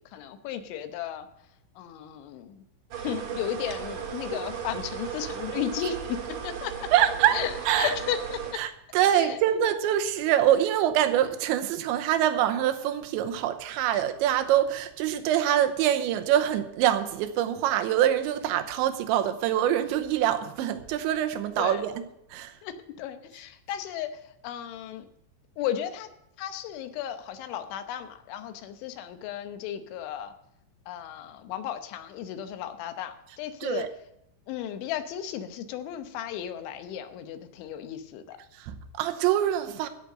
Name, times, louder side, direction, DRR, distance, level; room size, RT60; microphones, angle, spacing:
voice 1, 0.1-1.3 1.8-2.6 3.0-6.9 7.3-8.6 9.1-9.4 13.9-14.0 21.6-21.8 22.6-25.1 25.6-26.1 26.4-30.3 30.9-33.9 34.5-38.4, left 10 dB, 80° left, 3.3 m, -34 dB
sound 1, 2.9-8.5, right 8 dB, 55° right, 2.6 m, -36 dB
voice 2, 6.9-8.0 8.5-22.5 33.6-33.9 38.5-39.9, right 11 dB, 80° right, 3.1 m, -25 dB
16.0 x 6.6 x 6.6 m
omnidirectional pair, 5.4 m